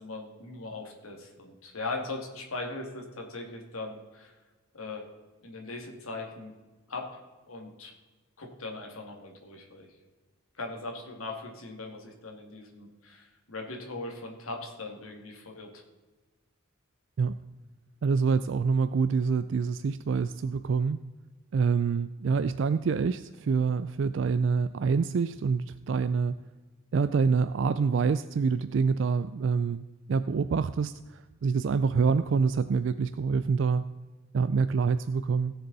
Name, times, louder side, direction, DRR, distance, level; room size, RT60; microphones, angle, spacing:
voice 1, 0.0-4.3 4.7-5.1 5.4-6.5 6.9-7.2 7.5-7.9 8.4-9.9 10.6-15.8, left 2 dB, 80° left, 2 dB, 2.2 m, -39 dB
voice 2, 18.0-21.0 21.5-26.4 26.9-33.9 34.3-35.5, right 5 dB, 60° right, 13 dB, 0.3 m, -26 dB
16.5 x 6.9 x 4.0 m, 1.3 s
head